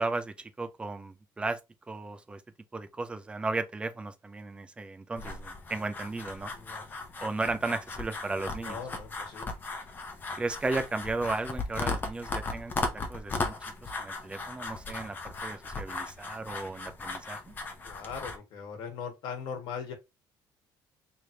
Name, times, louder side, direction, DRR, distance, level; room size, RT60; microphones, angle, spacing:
voice 1, 0.0-1.6 1.9-2.4 2.7-6.5 7.2-8.8 10.4-13.5 13.8-17.5, right 3 dB, 15° right, 0.5 m, -35 dB
sound 1, 5.2-18.4, left 3 dB, 25° left, 0.8 m, -37 dB
voice 2, 8.6-9.5 17.8-19.9, left 6 dB, 65° left, 1.3 m, -40 dB
3.3 x 3.0 x 3.7 m
cardioid pair, 160°, 8 cm